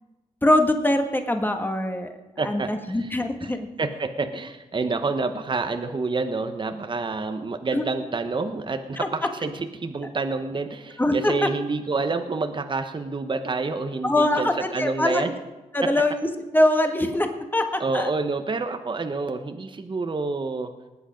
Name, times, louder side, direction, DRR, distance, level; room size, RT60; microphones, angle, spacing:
voice 1, 0.4-2.1 2.4-3.7 7.7-7.8 9.0-9.1 11.0-11.5 14.0-15.2 15.7-16.1 16.5-17.3 17.5-17.6 17.9-18.1, left 1 dB, 15° left, 5 dB, 1.7 m, -22 dB
voice 2, 2.4-3.1 3.4-3.5 3.8-15.3 15.8-15.9 17.8-20.7, right 3 dB, 35° right, 7 dB, 1.0 m, -28 dB
19.5 x 8.1 x 5.1 m, 1.1 s
cardioid pair, 60°, 14 cm